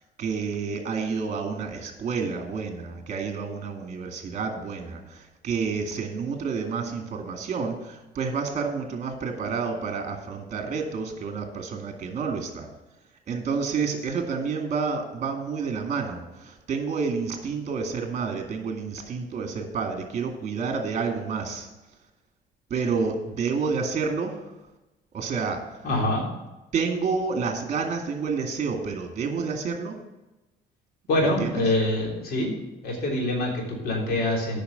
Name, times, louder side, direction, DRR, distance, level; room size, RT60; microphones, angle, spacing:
voice 1, 0.0-12.7 13.3-21.7 22.7-24.5 25.1-25.8 26.7-30.0 31.2-31.5, right 5 dB, 45° right, 4 dB, 2.1 m, -29 dB
voice 2, 25.8-26.2 31.1-32.5 32.8-34.6, left 1 dB, 65° left, -1 dB, 3.5 m, -25 dB
8.7 x 6.0 x 7.9 m, 1.0 s
cardioid pair, 110°, 17 cm